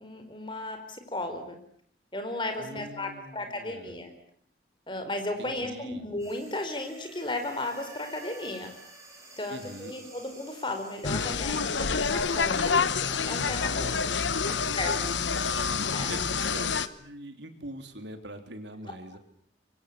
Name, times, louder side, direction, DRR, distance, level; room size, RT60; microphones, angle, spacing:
voice 1, 0.0-1.6 2.1-4.1 4.9-8.7 9.4-14.1 14.4-15.2 15.9-16.1, left 2 dB, 25° left, 6 dB, 4.7 m, -35 dB
voice 2, 2.6-4.0 5.4-6.1 9.5-9.9 14.5-14.6 16.0-19.2, right 1 dB, 75° right, 7 dB, 3.6 m, -43 dB
sound 1, 6.2-16.9, right 2 dB, 15° right, 7.6 m, -48 dB
sound 2, 11.0-16.9, left 5 dB, 85° left, 1.1 m, -27 dB
25.5 x 24.5 x 8.5 m, 0.62 s
head